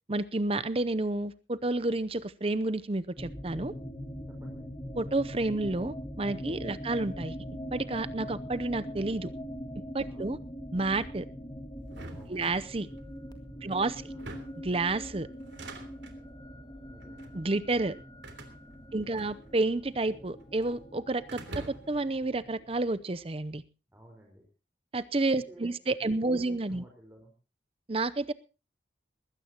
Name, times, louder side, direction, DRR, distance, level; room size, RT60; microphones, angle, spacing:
voice 1, 0.1-3.7 5.0-7.3 7.7-9.3 9.9-10.4 10.7-11.3 12.3-12.9 13.6-14.0 14.6-15.3 17.3-18.0 18.9-23.6 24.9-26.8 27.9-28.3, right 2 dB, 30° right, 15 dB, 0.7 m, -30 dB
sound 1, 3.2-23.0, equal, 25° left, 1.9 m, -42 dB
voice 2, 4.3-4.7 6.6-6.9 10.0-10.3 12.1-12.4 13.5-14.3 16.9-17.2 18.9-19.3 23.9-24.4 25.4-25.7 26.0-27.3, equal, 10° right, -1 dB, 4.6 m, -54 dB
sound 2, 11.9-13.0 14.0-14.7 15.4-16.2 17.0-17.4 18.2-19.7 20.0-20.8 21.3-22.0, right 2 dB, 85° right, 3.1 m, -46 dB
21.0 x 16.0 x 2.9 m, 0.32 s
head